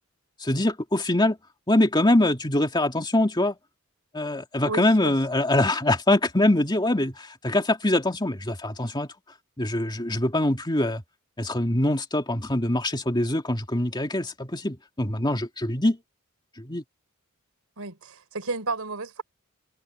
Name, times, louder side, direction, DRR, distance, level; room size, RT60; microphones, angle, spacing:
voice 1, 0.4-1.4 1.7-3.6 4.1-9.1 9.6-11.0 11.4-16.0 16.6-16.8, left 1 dB, 20° left, 2.6 m, -23 dB
voice 2, 4.7-5.2 17.8-19.2, right 3 dB, 85° right, 3.7 m, -32 dB
head